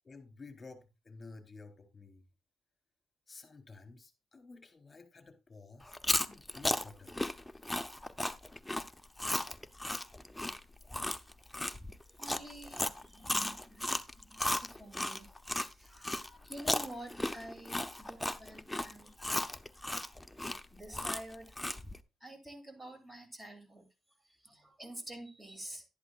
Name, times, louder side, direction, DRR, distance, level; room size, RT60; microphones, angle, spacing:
voice 1, 0.0-2.2 3.3-5.9 6.2-7.1, left 3 dB, 30° left, 3.4 m, -52 dB
Chewing mastication, 5.9-15.7 16.0-22.0, left 1 dB, 5° left, 0.6 m, -35 dB
voice 2, 12.2-15.3 15.7-19.1 20.7-21.5 22.2-23.8 24.4-25.8, right 1 dB, 15° right, 2.7 m, -48 dB
11.5 x 11.0 x 2.4 m
cardioid pair, 90°, 0 cm